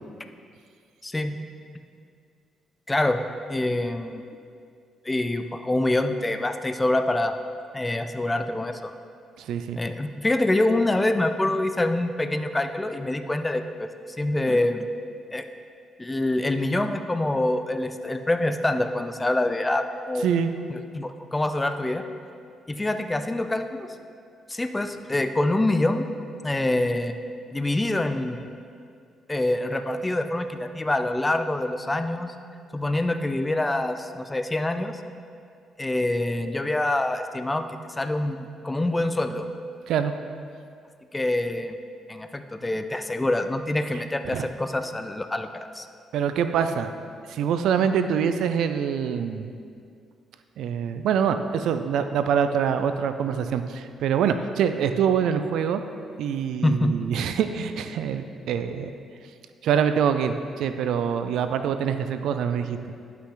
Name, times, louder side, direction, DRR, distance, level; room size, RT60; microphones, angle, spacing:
voice 1, 1.0-1.3 2.9-3.2 3.5-4.2 5.0-7.3 7.7-8.9 9.7-13.9 14.2-14.9 15.3-15.4 16.0-20.3 20.7-22.0 22.7-23.9 24.5-26.1 26.4-27.1 27.5-28.5 29.3-32.3 32.7-35.0 35.8-37.6 38.0-39.5 41.1-41.8 42.1-45.9 56.6-57.1, left 1 dB, 15° left, 8 dB, 0.5 m, -25 dB
voice 2, 9.4-9.8 20.2-20.5 39.9-40.1 43.9-44.0 44.3-44.5 46.1-46.9 47.3-49.5 50.6-55.8 56.2-58.9 59.6-62.8, right 7 dB, 80° right, 9 dB, 0.4 m, -25 dB
11.5 x 5.8 x 3.8 m, 2.3 s
cardioid pair, 95°, 0 cm